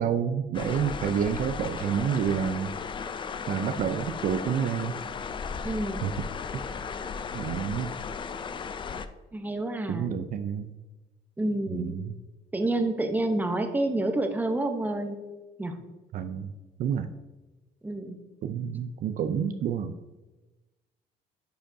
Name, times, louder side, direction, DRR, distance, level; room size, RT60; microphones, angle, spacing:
voice 1, 0.0-2.7 3.5-5.0 6.0-6.1 6.5-6.6 7.3-7.9 9.9-10.7 11.7-12.1 16.1-16.5 16.8-17.1 18.4-20.0, right 8 dB, 55° right, 9 dB, 0.4 m, -29 dB
sound 1, 0.5-9.1, left 5 dB, 30° left, 0.4 m, -35 dB
voice 2, 5.6-6.1 9.3-10.1 11.4-12.0 12.5-15.2 15.6-15.8 17.8-18.2, right 2 dB, 10° right, 6 dB, 0.7 m, -28 dB
10.0 x 5.1 x 2.6 m, 1.1 s
cardioid pair, 110°, 17 cm